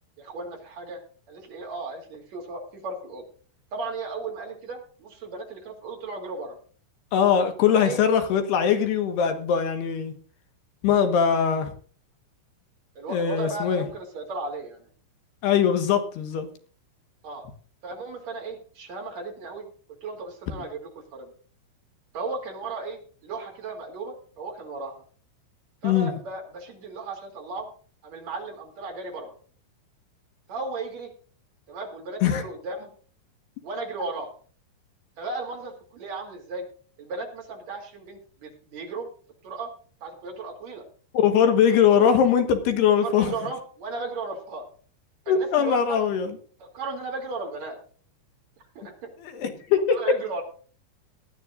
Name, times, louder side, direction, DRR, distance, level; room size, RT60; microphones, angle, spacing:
voice 1, 0.2-1.0 1.3-3.2 3.7-6.6 7.7-8.0 13.0-14.9 17.2-17.5 17.8-19.7 20.0-21.3 22.1-25.0 25.8-27.7 28.0-29.3 30.5-31.1 31.7-32.9 33.6-34.3 35.2-36.7 37.0-39.1 39.4-39.7 40.0-40.8 41.9-42.1 42.9-44.6 45.3-46.0 46.6-47.8 48.8-49.1 49.9-50.4, right 3 dB, 40° right, 2 dB, 3.6 m, -35 dB
voice 2, 7.1-10.1 10.8-11.7 13.1-13.8 15.4-16.5 25.8-26.1 32.2-32.4 41.1-43.3 45.3-46.3 49.2-50.0, left 8 dB, 65° left, 6 dB, 3.2 m, -21 dB
19.5 x 12.5 x 2.6 m, 0.42 s
omnidirectional pair, 5.5 m